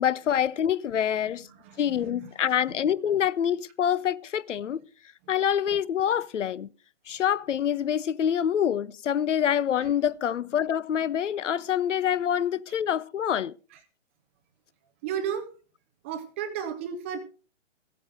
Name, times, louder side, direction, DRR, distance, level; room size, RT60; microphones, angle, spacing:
voice 1, 0.0-1.5 1.8-4.8 5.3-6.7 7.1-13.5, left 9 dB, 75° left, 0.7 m, -26 dB
voice 2, 1.2-2.3 2.7-2.8 13.7-13.8 15.0-15.5 16.0-17.2, right 8 dB, 10° right, 0.5 m, -34 dB
15.0 x 8.7 x 4.9 m
hypercardioid pair, 150°, 37 cm